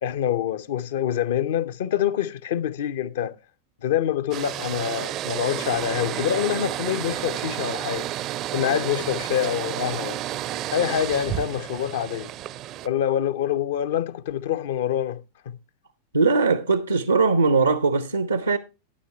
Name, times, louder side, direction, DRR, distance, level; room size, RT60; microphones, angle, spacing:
voice 1, 0.0-3.3 3.8-8.1 8.5-10.2 10.7-12.3 12.8-15.6, left 10 dB, 55° left, 0.6 m, -26 dB
sound 1, 4.3-12.9, right 13 dB, 35° right, 0.4 m, -31 dB
voice 2, 16.1-18.6, right 4 dB, 80° right, 0.6 m, -20 dB
12.5 x 9.6 x 3.1 m
figure-of-eight pair, 90°, 0 cm